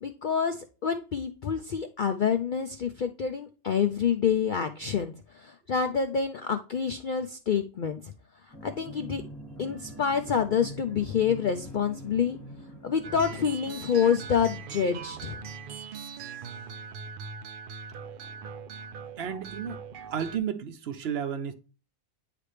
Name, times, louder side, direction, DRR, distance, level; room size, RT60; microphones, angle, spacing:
voice 1, 0.0-8.1 8.6-9.2 9.6-12.4 12.8-15.4, left 7 dB, 70° left, 0.4 m, -27 dB
sound 1, 8.5-16.1, right 1 dB, 20° left, 1.3 m, -45 dB
sound 2, 13.0-20.4, right 5 dB, 85° right, 0.4 m, -41 dB
voice 2, 19.2-19.8 20.1-21.5, right 8 dB, 55° right, 0.8 m, -32 dB
9.7 x 3.3 x 3.3 m
omnidirectional pair, 1.5 m